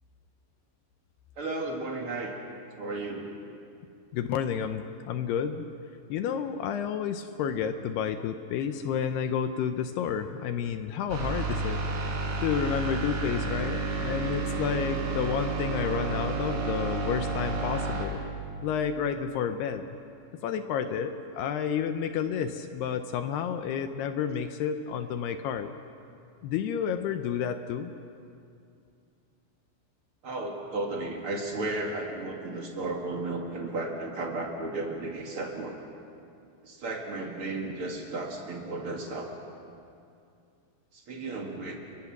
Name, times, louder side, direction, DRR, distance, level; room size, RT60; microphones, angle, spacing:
voice 1, 1.4-2.4 2.8-3.3 30.2-35.8 36.6-39.3 40.9-41.8, right 2 dB, 45° right, 1 dB, 2.0 m, -34 dB
voice 2, 4.1-5.7 6.1-11.8 12.4-18.2 18.6-19.9 20.4-25.7 26.4-27.9, left 8 dB, 75° left, 8 dB, 2.6 m, -30 dB
sound 1, 11.1-18.1, right 3 dB, 75° right, 6.3 m, -31 dB
30.0 x 22.5 x 6.0 m, 2.5 s
omnidirectional pair, 5.2 m